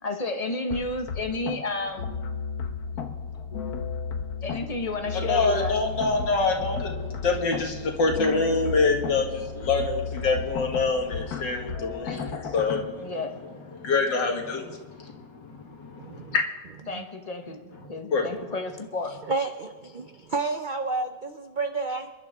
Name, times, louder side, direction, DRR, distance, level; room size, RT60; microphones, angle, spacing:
voice 1, 0.0-2.1 4.4-5.8 13.0-13.4 16.9-17.6 17.9-19.1, left 2 dB, 25° left, 5 dB, 1.1 m, -31 dB
sound 1, 0.7-12.8, left 5 dB, 60° left, 1.6 m, -34 dB
voice 2, 5.1-13.1 13.7-16.4 18.1-18.2, left 3 dB, 85° left, 1 dB, 2.6 m, -26 dB
voice 3, 16.0-16.3 16.9-17.1 19.2-22.1, right 3 dB, 75° right, 7 dB, 0.4 m, -30 dB
28.5 x 11.5 x 3.6 m, 1.3 s
omnidirectional pair, 1.9 m